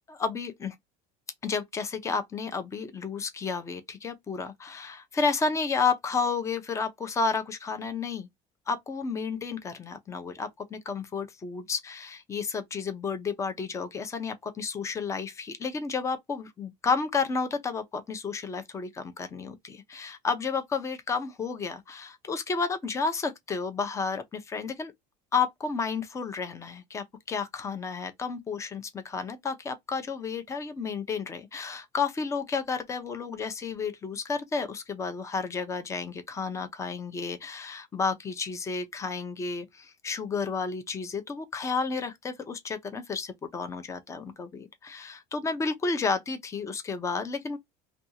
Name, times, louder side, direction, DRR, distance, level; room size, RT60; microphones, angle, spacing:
voice 1, 0.1-0.8 1.4-8.3 8.7-24.9 25.3-47.6, left 5 dB, 20° left, 0.5 m, -31 dB
2.6 x 2.3 x 2.7 m
cardioid pair, 140°, 16 cm